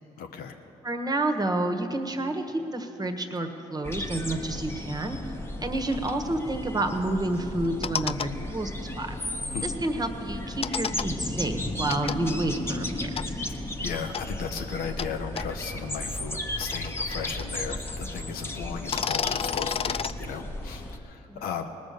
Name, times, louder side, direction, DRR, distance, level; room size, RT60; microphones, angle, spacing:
voice 1, 0.2-0.6 9.5-9.7 13.8-21.7, left 6 dB, 75° left, 4 dB, 0.9 m, -36 dB
voice 2, 0.8-5.2 5.6-9.2 9.6-13.4 21.3-21.4, right 2 dB, 25° right, 5 dB, 1.4 m, -29 dB
sound 1, 3.8-21.0, left 1 dB, 15° left, 1.2 m, -34 dB
sound 2, 5.9-6.1 7.6-8.3 10.6-11.1 11.9-12.2 13.2-13.3 14.1-14.2 15.0-15.1 15.4-15.5 16.4-17.9 18.2-18.3 18.8-20.1, left 7 dB, 40° left, 0.4 m, -30 dB
19.0 x 6.4 x 6.8 m, 2.8 s
supercardioid pair, 55°, 16 cm